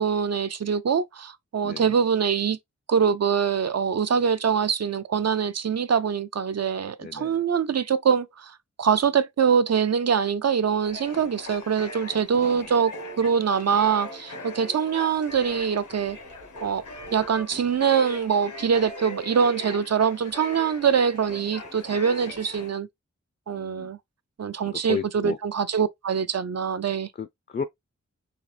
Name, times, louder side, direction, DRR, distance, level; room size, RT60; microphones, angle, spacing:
voice 1, 0.0-2.6 2.9-16.2 16.6-16.8 17.1-22.9 23.5-24.0 24.4-27.1, right 7 dB, 60° right, 0.5 m, -24 dB
voice 2, 1.6-1.9 7.0-7.4 12.3-12.7 23.5-23.9 24.7-25.4 27.2-27.6, left 6 dB, 35° left, 0.4 m, -34 dB
sound 1, 10.8-22.7, left 1 dB, 80° left, 1.2 m, -39 dB
3.9 x 2.5 x 3.3 m
wide cardioid pair, 60°, 30 cm